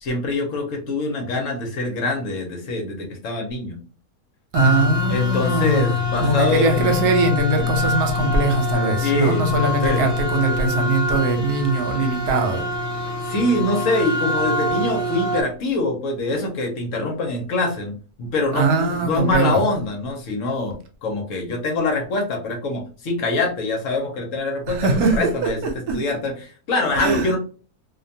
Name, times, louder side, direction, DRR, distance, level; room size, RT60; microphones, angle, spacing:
voice 1, 0.0-3.8 5.1-6.8 9.0-10.1 13.2-17.9 18.2-25.6 25.9-27.4, left 2 dB, 65° left, 2 dB, 0.9 m, -24 dB
sound 1, 4.5-15.4, left 3 dB, 30° left, 0.8 m, -24 dB
voice 2, 4.5-5.9 6.2-12.6 18.5-19.7 24.7-26.0 26.9-27.3, right 3 dB, 80° right, 4 dB, 1.2 m, -21 dB
2.6 x 2.2 x 2.6 m, 0.38 s
omnidirectional pair, 1.6 m